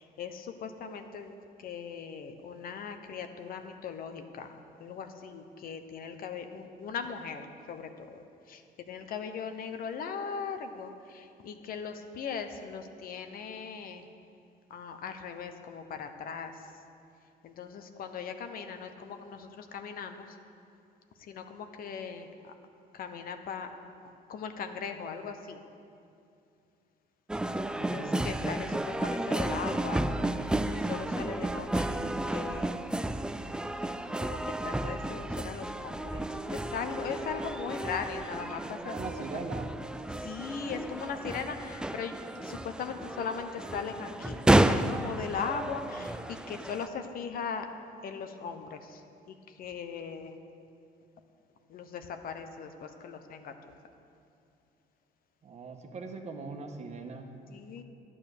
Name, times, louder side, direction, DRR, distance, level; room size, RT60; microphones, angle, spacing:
voice 1, 0.0-1.3 1.6-14.1 14.7-16.7 17.4-20.4 21.2-22.5 22.9-23.7 24.3-25.6 27.8-32.8 34.2-39.0 40.1-47.7 48.0-50.4 51.7-53.7 57.5-57.8, left 6 dB, 60° left, 7 dB, 1.0 m, -39 dB
sound 1, 27.3-46.9, right 1 dB, 5° right, 0.4 m, -32 dB
voice 2, 27.8-28.2 38.8-39.7 55.4-57.3, right 4 dB, 40° right, 4 dB, 1.4 m, -40 dB
12.0 x 8.7 x 6.7 m, 2.6 s
cardioid pair, 110°, 17 cm